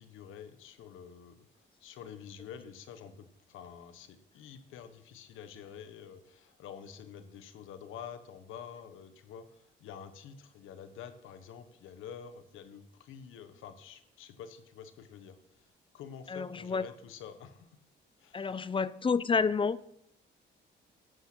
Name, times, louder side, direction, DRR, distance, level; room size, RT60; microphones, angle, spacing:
voice 1, 0.0-1.5 1.8-15.4 15.9-17.7 18.2-19.0 19.4-19.5, left 8 dB, 85° left, 1.2 m, -48 dB
voice 2, 16.3-16.8 18.3-19.8, left 5 dB, 25° left, 0.6 m, -29 dB
11.5 x 8.5 x 6.1 m
cardioid pair, 90°, 20 cm